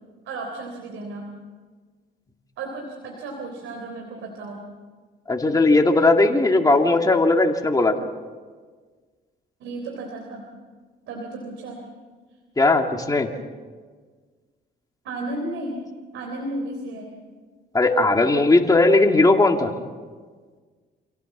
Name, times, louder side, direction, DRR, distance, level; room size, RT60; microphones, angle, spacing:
voice 1, 0.3-1.3 2.6-4.7 9.6-10.4 11.1-11.8 15.0-15.8 16.1-17.1, right 2 dB, 85° right, 1 dB, 3.6 m, -33 dB
voice 2, 5.3-8.0 12.6-13.3 17.7-19.7, left 2 dB, 20° left, 3 dB, 2.2 m, -18 dB
27.0 x 17.5 x 7.3 m, 1.5 s
cardioid pair, 90°, 20 cm